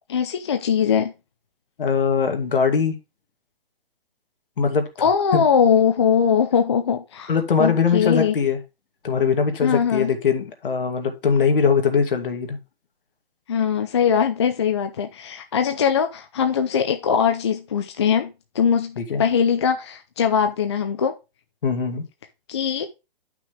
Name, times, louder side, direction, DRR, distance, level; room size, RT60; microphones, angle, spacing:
voice 1, 0.1-1.1 5.0-7.3 7.6-8.4 9.6-10.1 13.5-21.1 22.5-22.9, left 7 dB, 30° left, 0.5 m, -21 dB
voice 2, 1.8-3.0 4.6-4.9 5.3-5.4 7.3-8.6 9.0-12.6 19.0-19.2 21.6-22.0, left 6 dB, 65° left, 2.2 m, -21 dB
9.7 x 6.0 x 3.6 m
hypercardioid pair, 170°, 29 cm